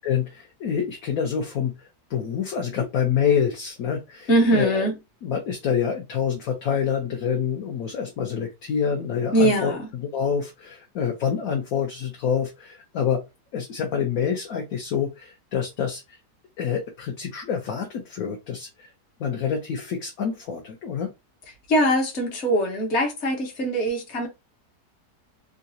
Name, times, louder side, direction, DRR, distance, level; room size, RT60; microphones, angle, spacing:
voice 1, 0.0-4.8 5.2-9.7 10.1-13.2 13.5-16.0 16.6-18.9 19.2-21.1, left 7 dB, 65° left, 1.1 m, -27 dB
voice 2, 4.3-5.0 9.3-9.9 21.7-24.3, right 1 dB, 45° left, 1.2 m, -22 dB
3.9 x 2.4 x 2.7 m
omnidirectional pair, 1.8 m